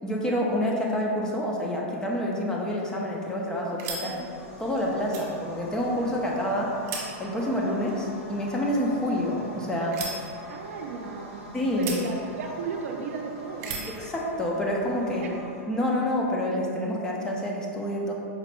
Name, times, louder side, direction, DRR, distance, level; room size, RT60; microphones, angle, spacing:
voice 1, 0.0-4.2 4.6-6.8 7.2-10.1 10.4-10.5 11.5-11.9 13.9-15.3 15.7-18.1, left 1 dB, 10° left, -2 dB, 0.4 m, -28 dB
sound 1, 2.7-14.0, right 4 dB, 40° right, 0.7 m, -42 dB
sound 2, 3.8-15.6, equal, 75° left, 1.2 m, -45 dB
voice 2, 10.5-11.5 11.8-13.8 15.1-15.3, right 4 dB, 70° right, 1 dB, 0.5 m, -35 dB
4.9 x 2.1 x 3.0 m, 2.4 s
supercardioid pair, 150°, 8 cm